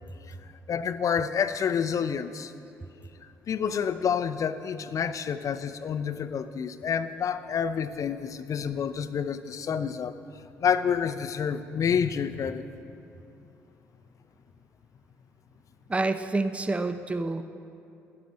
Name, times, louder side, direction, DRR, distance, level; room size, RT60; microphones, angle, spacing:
voice 1, 0.7-2.5 3.5-10.2 10.6-12.7, left 7 dB, 50° left, 11 dB, 0.6 m, -28 dB
voice 2, 15.9-17.4, right 2 dB, 15° right, 10 dB, 0.6 m, -28 dB
12.0 x 10.0 x 6.4 m, 2.7 s
hypercardioid pair, 50°, 7 cm